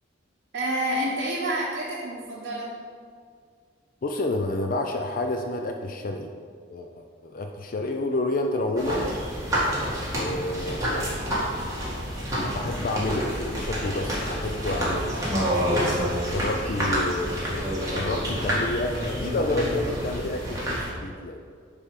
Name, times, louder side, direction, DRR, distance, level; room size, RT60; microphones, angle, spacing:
voice 1, 0.5-2.7 16.4-16.7, right 1 dB, 55° right, -4 dB, 0.9 m, -29 dB
voice 2, 4.0-6.3 6.7-9.0 10.1-11.3 12.4-15.1 16.2-21.4, left 2 dB, 45° left, 4 dB, 0.4 m, -29 dB
sound 1, 8.8-20.9, equal, 15° right, 1.8 m, -28 dB
9.7 x 3.5 x 5.1 m, 2.1 s
head